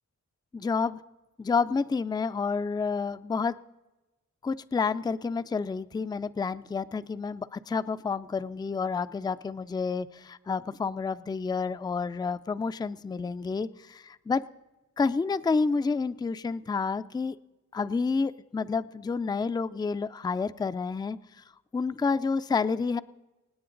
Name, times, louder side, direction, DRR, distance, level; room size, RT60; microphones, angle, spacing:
voice 1, 0.5-1.0 1.4-3.6 4.4-14.4 15.0-17.4 17.7-21.2 21.7-23.0, left 4 dB, 15° left, 13 dB, 0.4 m, -29 dB
25.5 x 9.6 x 3.8 m, 1.1 s
wide cardioid pair, 125°, 31 cm